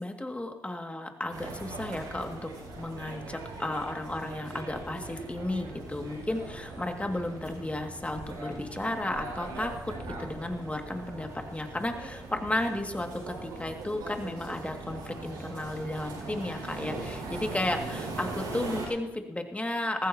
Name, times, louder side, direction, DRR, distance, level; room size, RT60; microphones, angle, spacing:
voice 1, 0.0-9.9 10.2-20.1, left 1 dB, 15° left, 4 dB, 2.1 m, -33 dB
sound 1, 1.3-18.9, right 3 dB, 80° right, 5.4 m, -40 dB
sound 2, 4.0-16.4, left 1 dB, 45° right, 4.8 m, -53 dB
19.5 x 14.5 x 2.8 m, 1.0 s
hypercardioid pair, 45°, 7 cm